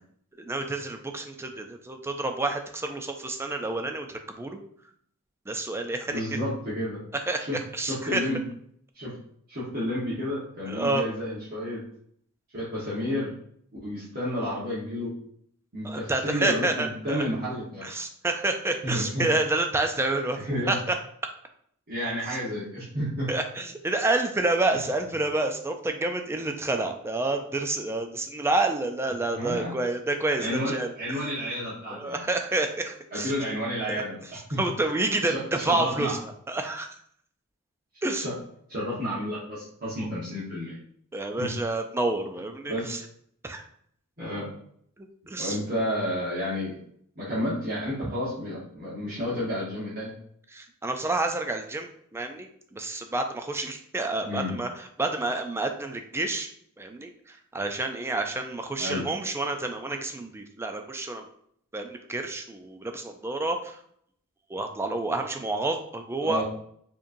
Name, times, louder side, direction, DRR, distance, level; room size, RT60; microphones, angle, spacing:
voice 1, 0.4-4.6 5.5-6.2 7.3-8.2 10.6-11.0 15.8-17.3 17.8-20.4 20.7-20.9 23.3-31.2 31.9-33.3 33.9-34.0 34.6-36.2 36.5-36.9 38.0-38.2 41.1-43.0 43.4-43.6 45.0-45.6 48.0-48.1 50.5-56.5 56.8-61.2 61.7-63.8 64.5-66.4, right 2 dB, 10° right, 5 dB, 0.4 m, -29 dB
voice 2, 6.1-7.0 7.3-7.6 7.8-8.4 8.9-9.1 9.5-11.8 12.5-13.3 13.8-15.1 15.7-17.8 18.8-19.3 20.3-20.8 21.9-23.3 24.7-24.8 29.3-29.7 30.4-32.2 33.1-34.2 34.5-34.6 35.3-36.2 38.2-38.3 38.7-40.8 41.4-41.5 42.7-42.9 44.2-44.5 45.4-46.8 47.2-50.1 54.2-54.5 58.8-59.0 66.2-66.4, equal, 40° right, -10 dB, 1.2 m, -31 dB
4.6 x 3.0 x 2.6 m, 0.66 s
head